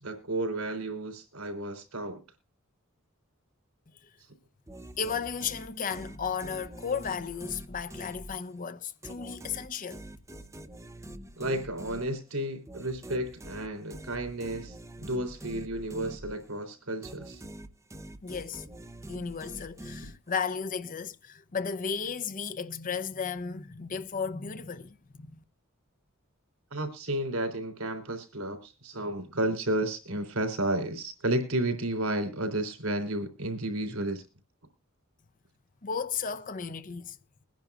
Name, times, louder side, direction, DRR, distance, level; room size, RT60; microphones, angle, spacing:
voice 1, 0.0-2.2 11.4-17.4 26.7-34.2, right 1 dB, 90° right, 3.6 m, -32 dB
sound 1, 4.7-8.6 9.0-16.7 17.0-20.5, right 1 dB, 15° right, 0.7 m, -45 dB
voice 2, 5.0-10.0 18.2-18.6 19.1-25.4 35.8-37.2, left 6 dB, 40° left, 0.7 m, -34 dB
22.5 x 10.5 x 2.4 m
head